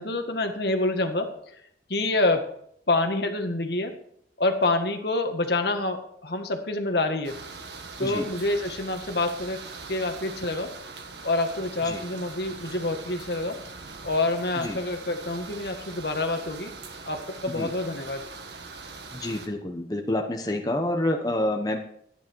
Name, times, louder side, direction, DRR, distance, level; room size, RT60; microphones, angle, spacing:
voice 1, 0.0-1.3 1.9-2.5 2.9-3.9 4.4-7.4 8.0-9.6 9.9-10.7 11.2-13.6 14.0-16.7 17.1-18.2, left 2 dB, 65° left, 5 dB, 1.7 m, -27 dB
sound 1, 7.2-19.5, right 4 dB, 75° right, 1.8 m, -42 dB
voice 2, 19.1-21.8, left 1 dB, 20° left, 3 dB, 1.1 m, -28 dB
13.0 x 10.5 x 4.7 m, 0.68 s
head